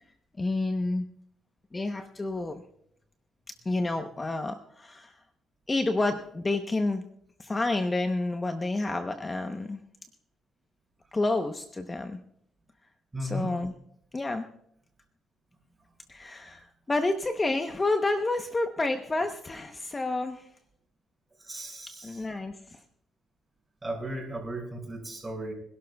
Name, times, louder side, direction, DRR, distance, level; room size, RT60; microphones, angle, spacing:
voice 1, 0.4-1.1 1.7-2.6 3.6-5.2 5.7-7.0 7.4-9.8 11.1-12.2 13.2-13.7 14.1-14.5 16.1-20.5 22.0-22.8, left 2 dB, 25° left, 7 dB, 0.9 m, -29 dB
voice 2, 13.1-13.5 21.4-22.2 23.8-25.5, right 1 dB, 20° right, -1 dB, 5.9 m, -35 dB
25.5 x 12.0 x 2.3 m, 0.71 s
cardioid pair, 90°, 0 cm